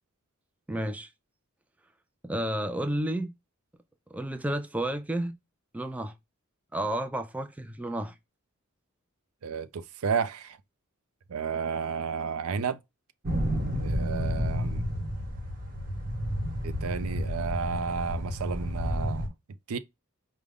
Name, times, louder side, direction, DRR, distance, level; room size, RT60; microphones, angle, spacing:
voice 1, 0.7-1.1 2.2-3.3 4.1-5.4 5.7-6.1 6.7-8.2, right 1 dB, 5° right, 0.3 m, -31 dB
voice 2, 9.4-10.6 11.3-12.8 13.8-14.8 16.6-19.3 19.7-19.8, right 6 dB, 85° right, 0.5 m, -32 dB
sound 1, 13.2-19.3, equal, 40° right, 1.2 m, -31 dB
4.9 x 2.2 x 3.5 m
head